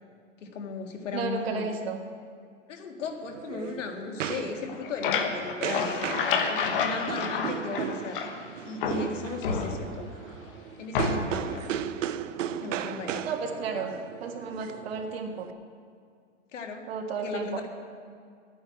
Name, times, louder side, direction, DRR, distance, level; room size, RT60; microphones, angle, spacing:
voice 1, 0.4-1.7 2.7-6.0 6.5-8.2 8.6-10.1 10.8-11.7 12.6-13.3 16.5-16.9 17.2-17.7, left 4 dB, 80° left, 4 dB, 1.9 m, -36 dB
voice 2, 1.1-2.0 7.2-7.3 7.6-7.8 13.2-13.9 14.2-15.5 16.9-17.7, right 5 dB, 55° right, 3 dB, 1.7 m, -33 dB
sound 1, 3.0-15.5, right 10 dB, 90° right, 0.7 m, -36 dB
sound 2, 4.5-8.5 8.8-10.1 10.9-11.5, left 5 dB, 45° left, 1.3 m, -29 dB
11.0 x 9.6 x 8.2 m, 2.2 s
hypercardioid pair, 165°, 37 cm